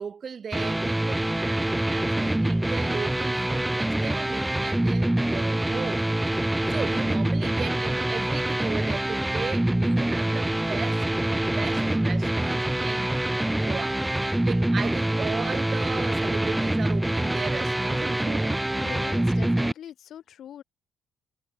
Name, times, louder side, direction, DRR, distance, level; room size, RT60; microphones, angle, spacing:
voice 1, 0.0-6.1 6.7-18.7, right 6 dB, 45° right, 5.9 m, -36 dB
sound 1, 0.5-19.7, right 1 dB, 10° right, 0.4 m, -25 dB
voice 2, 18.7-20.6, left 10 dB, 65° left, 3.7 m, -42 dB
cardioid pair, 90°, 0 cm